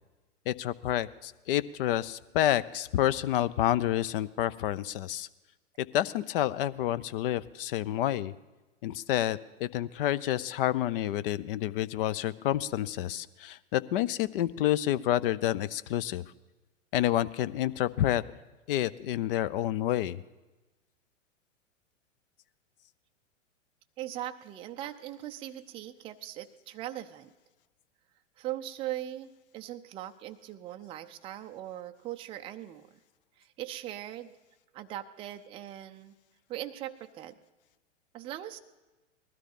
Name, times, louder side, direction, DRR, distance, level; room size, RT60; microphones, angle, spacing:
voice 1, 0.5-5.3 5.8-8.3 8.8-16.2 16.9-18.2 18.7-20.2, left 13 dB, 45° left, 17 dB, 0.6 m, -29 dB
voice 2, 24.0-27.3 28.4-32.9 33.4-34.3 34.7-36.1 36.5-37.4 38.1-38.6, right 13 dB, 15° right, 6 dB, 0.4 m, -40 dB
19.5 x 13.0 x 5.4 m, 1.1 s
hypercardioid pair, 110°, 38 cm